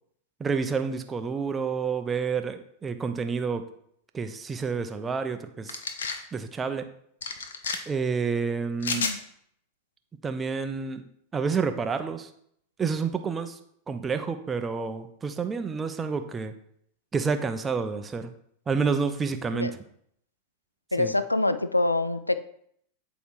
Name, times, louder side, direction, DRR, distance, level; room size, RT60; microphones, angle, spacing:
voice 1, 0.4-3.6 4.1-5.8 6.3-6.9 7.9-9.1 10.2-11.1 11.3-12.3 12.8-13.6 13.9-16.5 17.1-18.3 18.7-19.8 21.0-21.1, right 5 dB, 15° right, 8 dB, 0.6 m, -29 dB
sound 1, 5.7-6.2 7.2-7.8 8.8-9.2, left 5 dB, 65° left, 0.7 m, -30 dB
voice 2, 20.9-22.4, left 2 dB, 85° left, 12 dB, 0.3 m, -25 dB
7.9 x 3.0 x 4.8 m, 0.68 s
figure-of-eight pair, 90°, 0 cm